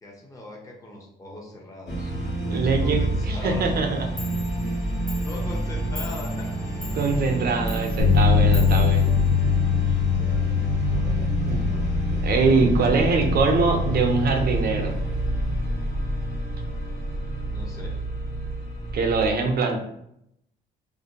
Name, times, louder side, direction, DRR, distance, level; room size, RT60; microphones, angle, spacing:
voice 1, 0.0-2.1 2.5-3.6 5.2-6.5 8.4-8.9 10.2-11.9 17.5-18.0, left 1 dB, 15° left, -2 dB, 0.6 m, -40 dB
sound 1, 1.9-19.3, right 2 dB, 60° left, 1.0 m, -28 dB
voice 2, 2.5-4.1 6.9-9.1 11.1-11.6 12.2-15.0 18.9-19.8, right 4 dB, 50° right, 3 dB, 0.5 m, -23 dB
Clock, 3.9-4.0 4.2-9.8, left 4 dB, 45° left, 0.8 m, -43 dB
Bass guitar, 8.0-14.2, left 7 dB, 80° left, 0.4 m, -23 dB
2.5 x 2.2 x 2.7 m, 0.76 s
cardioid pair, 90°, 20 cm